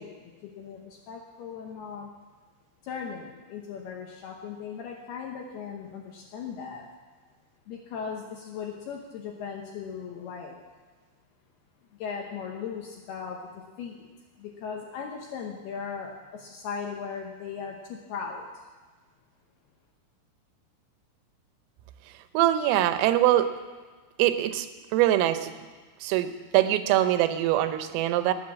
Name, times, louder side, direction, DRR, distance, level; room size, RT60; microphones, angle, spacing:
voice 1, 0.0-2.1 2.8-6.9 7.7-10.6 12.0-14.1 14.4-18.6, left 6 dB, 75° left, 1 dB, 2.4 m, -38 dB
voice 2, 22.4-23.5 24.2-24.7 24.9-25.5 26.0-28.3, right 13 dB, 90° right, 10 dB, 3.5 m, -23 dB
18.5 x 8.1 x 7.4 m, 1.4 s
omnidirectional pair, 5.8 m